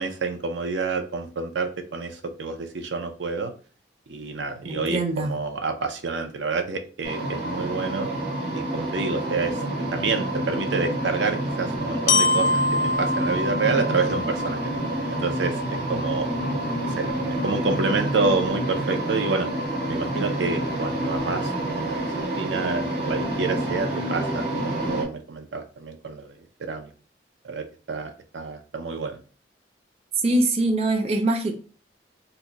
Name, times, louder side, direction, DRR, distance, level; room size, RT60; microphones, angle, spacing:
voice 1, 0.0-3.5 4.1-8.1 8.5-9.6 9.9-12.6 13.0-14.6 15.1-15.6 15.9-16.3 16.8-17.1 17.4-19.5 19.9-22.1 22.3-26.9 27.4-29.2, right 4 dB, 90° right, 0.5 m, -28 dB
voice 2, 4.6-5.3 30.2-31.5, right 2 dB, 35° right, 0.5 m, -23 dB
sound 1, 7.0-25.0, right 1 dB, 65° right, 1.2 m, -28 dB
Glockenspiel, 12.1-16.0, left 3 dB, 80° left, 0.4 m, -26 dB
2.9 x 2.2 x 3.8 m
head